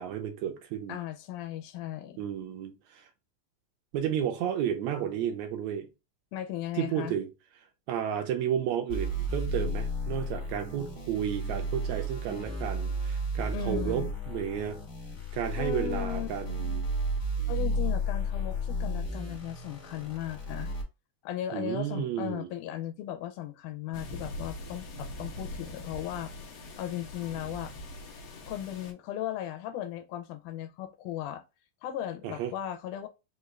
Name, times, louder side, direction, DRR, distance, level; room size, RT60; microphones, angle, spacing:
voice 1, 0.0-1.0 2.2-3.0 3.9-5.9 6.7-7.3 7.9-14.8 15.3-16.9 21.5-22.5 32.2-32.5, right 9 dB, 75° right, 1.8 m, -32 dB
voice 2, 0.9-2.2 6.3-7.1 13.5-14.1 15.6-16.3 17.5-20.7 21.2-27.7 28.5-31.4 31.8-33.1, left 12 dB, 90° left, 2.1 m, -37 dB
sound 1, 8.9-20.8, equal, 50° left, 0.9 m, -33 dB
sound 2, 23.9-28.9, left 1 dB, 70° left, 1.3 m, -42 dB
5.2 x 2.4 x 3.1 m
omnidirectional pair, 3.5 m